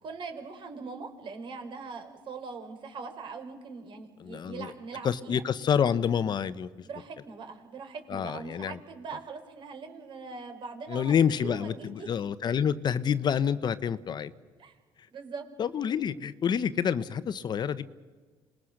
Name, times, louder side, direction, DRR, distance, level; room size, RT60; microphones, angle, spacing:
voice 1, 0.0-5.4 6.8-12.1 14.6-14.8 15.1-15.5, right 5 dB, 55° right, 6 dB, 4.2 m, -41 dB
voice 2, 4.2-4.7 5.0-6.9 8.1-8.8 10.9-14.3 15.6-17.8, left 8 dB, 45° left, 14 dB, 0.9 m, -28 dB
27.0 x 20.5 x 6.5 m, 1.4 s
cardioid pair, 90°, 10 cm